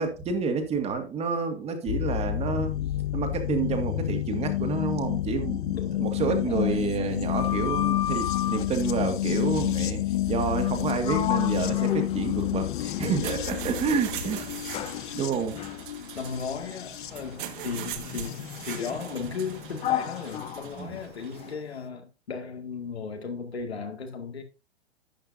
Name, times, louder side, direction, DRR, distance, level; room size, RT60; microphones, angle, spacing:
voice 1, 0.0-2.8 3.1-14.5 15.1-15.6 16.1-16.2 20.8-21.0, right 5 dB, 20° right, 1.8 m, -29 dB
sound 1, 1.9-18.9 20.1-20.2, left 14 dB, 50° left, 0.6 m, -29 dB
voice 2, 5.7-7.3 16.1-24.4, left 5 dB, 75° left, 2.2 m, -36 dB
Sliding door, 7.1-8.7 10.6-10.8 11.0-13.5 14.1-21.6, left 10 dB, 20° left, 0.8 m, -35 dB
sound 2, 12.9-21.5, right 9 dB, 50° right, 1.7 m, -41 dB
11.5 x 8.6 x 2.7 m
figure-of-eight pair, 115°, 32 cm